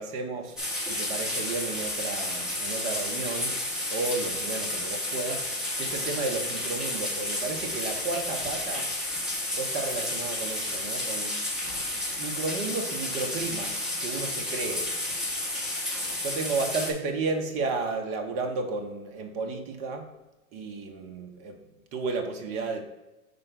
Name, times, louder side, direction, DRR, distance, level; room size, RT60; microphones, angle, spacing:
voice 1, 0.0-3.6 3.9-8.9 9.6-11.4 12.2-14.9 16.2-20.1 20.5-21.6 21.9-22.8, right 3 dB, 20° right, 0.4 m, -33 dB
sound 1, 0.6-16.9, left 1 dB, ahead, 1.2 m, -31 dB
5.0 x 4.4 x 5.7 m
hypercardioid pair, 135°, 43 cm